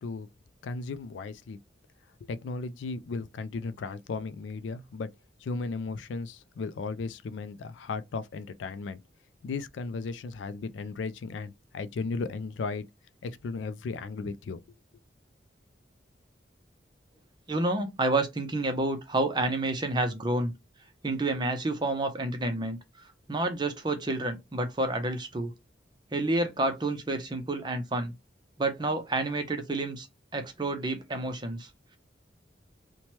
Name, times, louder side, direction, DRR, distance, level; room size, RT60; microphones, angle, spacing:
voice 1, 0.6-1.6 2.2-5.1 5.4-9.0 9.4-12.9 13.2-14.6, left 4 dB, 80° left, 0.3 m, -35 dB
voice 2, 17.5-20.5 21.0-25.5 26.1-28.1 28.6-30.1 30.3-31.7, right 2 dB, 25° right, 0.5 m, -29 dB
2.8 x 2.2 x 2.9 m
head